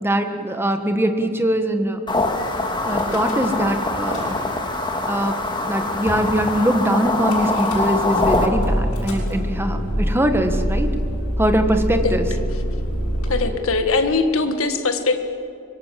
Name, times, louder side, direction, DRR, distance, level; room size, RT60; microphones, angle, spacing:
voice 1, 0.0-2.0 2.8-4.4 5.0-10.9 11.4-12.2, right 1 dB, 10° right, 6 dB, 1.5 m, -22 dB
sound 1, 2.1-8.5, left 2 dB, 20° left, 2.0 m, -23 dB
Car / Engine starting / Idling, 2.9-3.7 3.9-4.7 5.4-5.5 5.6-5.7 6.1-6.3 7.3-13.5, equal, 85° left, 7.0 m, -25 dB
voice 2, 13.3-15.2, left 3 dB, 65° left, 7 dB, 1.8 m, -21 dB
24.5 x 22.5 x 7.6 m, 2.5 s
head